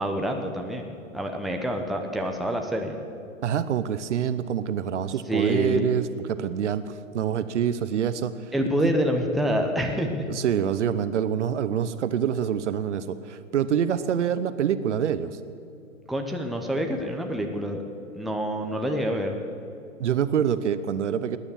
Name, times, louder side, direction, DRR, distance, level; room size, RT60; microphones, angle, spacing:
voice 1, 0.0-3.0 5.3-5.9 8.5-10.3 16.1-17.8 18.1-19.4, equal, ahead, 2 dB, 0.8 m, -27 dB
voice 2, 3.4-8.5 10.3-15.4 20.0-21.4, right 8 dB, 60° right, 13 dB, 0.9 m, -26 dB
19.0 x 9.9 x 7.3 m, 2.5 s
figure-of-eight pair, 120°, 40 cm